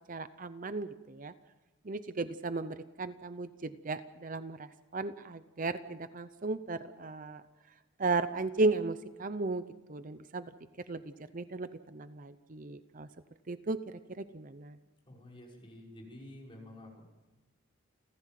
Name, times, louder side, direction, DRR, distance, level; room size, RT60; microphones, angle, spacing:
voice 1, 0.1-1.3 1.8-7.4 8.0-9.6 9.9-10.5 10.9-11.0 11.3-13.1 13.5-14.8, right 3 dB, 40° right, 12 dB, 0.7 m, -35 dB
voice 2, 15.1-17.0, left 1 dB, 25° left, -2 dB, 5.8 m, -50 dB
29.5 x 15.0 x 7.6 m, 1.1 s
head